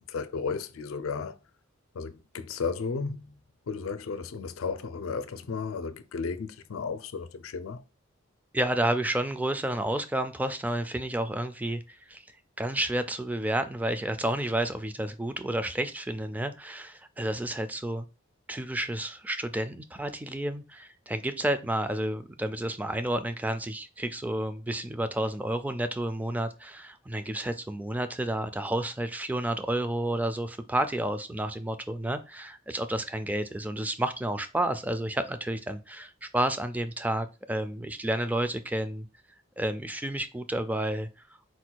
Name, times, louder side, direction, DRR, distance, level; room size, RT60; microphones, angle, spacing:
voice 1, 0.1-1.4 1.9-3.3 3.7-7.8, left 5 dB, 90° left, 0.5 m, -34 dB
voice 2, 8.5-12.2 12.6-18.1 18.5-39.1 39.6-41.1, right 1 dB, 10° right, 0.3 m, -30 dB
4.3 x 2.3 x 4.5 m
head